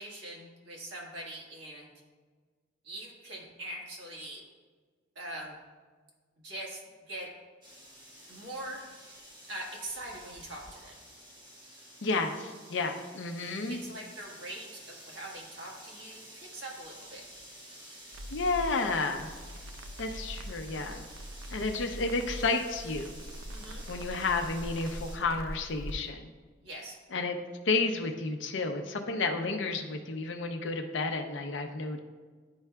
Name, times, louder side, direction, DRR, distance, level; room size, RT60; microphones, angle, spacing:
voice 1, 0.0-1.9 2.8-4.4 5.1-5.6 6.4-6.8 7.1-7.3 8.3-9.1 9.5-11.0 13.7-17.2 23.5-23.8 26.6-27.0, right 1 dB, 60° right, -2 dB, 1.4 m, -42 dB
sound 1, 7.6-25.2, equal, 20° right, 1.2 m, -51 dB
voice 2, 12.0-13.8 18.3-19.3 20.0-21.0 21.5-23.1 23.9-26.2 27.1-27.4 27.7-32.0, left 3 dB, 60° left, 5 dB, 0.6 m, -31 dB
Crackle, 18.1-25.9, equal, 90° right, 0.5 m, -43 dB
10.5 x 4.6 x 2.2 m, 1.5 s
head